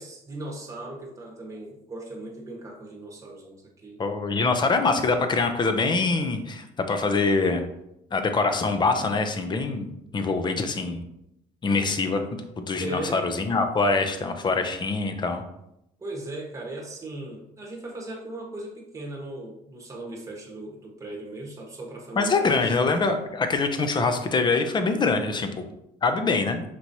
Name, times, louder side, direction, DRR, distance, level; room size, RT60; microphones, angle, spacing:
voice 1, 0.0-4.0 12.8-13.5 16.0-22.7, right 2 dB, 20° right, -1 dB, 1.2 m, -38 dB
voice 2, 4.0-7.6 8.1-11.0 11.6-12.3 12.6-15.4 22.2-25.6 26.0-26.6, left 3 dB, 25° left, 7 dB, 0.6 m, -24 dB
5.9 x 3.0 x 2.7 m, 0.83 s
cardioid pair, 110°, 17 cm